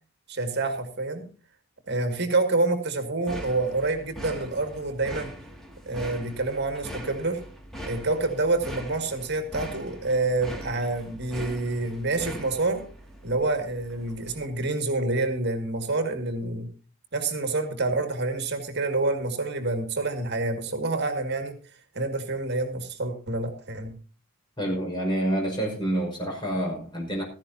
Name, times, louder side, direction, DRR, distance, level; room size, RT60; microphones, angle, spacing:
voice 1, 0.3-1.3 1.9-5.3 5.9-7.4 7.9-12.8 13.2-16.7 17.1-21.6 21.9-23.9, right 2 dB, 55° right, 2.1 m, -27 dB
sound 1, 3.3-14.6, equal, ahead, 2.3 m, -41 dB
voice 2, 24.6-27.2, right 1 dB, 20° left, 5.6 m, -28 dB
16.5 x 14.5 x 2.8 m
head